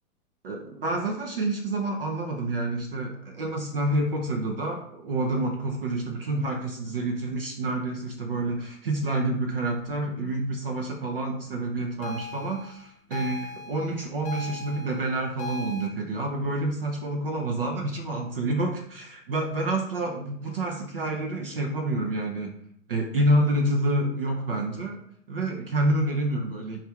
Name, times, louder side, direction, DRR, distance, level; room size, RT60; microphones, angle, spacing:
voice 1, 0.4-22.5 22.9-25.0 25.3-26.8, right 1 dB, 40° right, 1 dB, 0.4 m, -28 dB
sound 1, 12.0-15.9, left 4 dB, 45° left, 0.6 m, -38 dB
3.2 x 2.4 x 4.2 m, 0.65 s
figure-of-eight pair, 115°, 47 cm